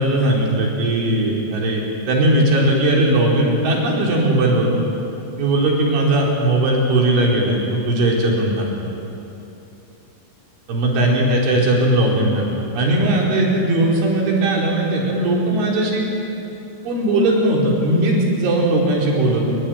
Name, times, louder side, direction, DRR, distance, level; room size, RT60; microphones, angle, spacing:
voice 1, 0.0-1.8 2.1-4.8 5.4-8.7 10.7-16.1 16.8-19.6, right 1 dB, 70° right, -2 dB, 6.8 m, -18 dB
26.5 x 24.0 x 9.3 m, 3.0 s
omnidirectional pair, 5.6 m